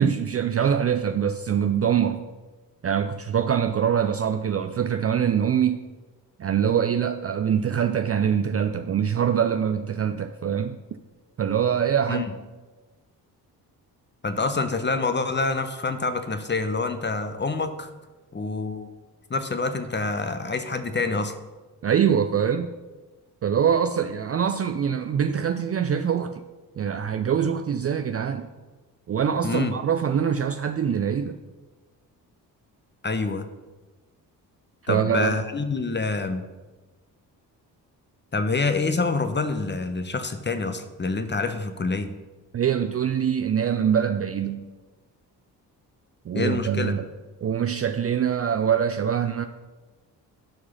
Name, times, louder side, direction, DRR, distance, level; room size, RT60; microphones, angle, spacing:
voice 1, 0.0-2.2 2.8-5.8 6.4-10.8 11.4-12.2 21.8-22.7 23.4-26.4 26.8-28.5 29.1-31.4 34.9-35.4 42.5-44.7 46.3-47.1 47.4-49.5, right 8 dB, 30° right, 9 dB, 0.5 m, -24 dB
voice 2, 14.2-17.9 18.3-18.9 19.3-21.3 29.4-29.7 33.0-33.5 34.9-36.4 38.3-42.1 46.3-47.0, left 3 dB, 20° left, 9 dB, 1.0 m, -26 dB
12.0 x 4.8 x 5.6 m, 1.2 s
hypercardioid pair, 40°, 49 cm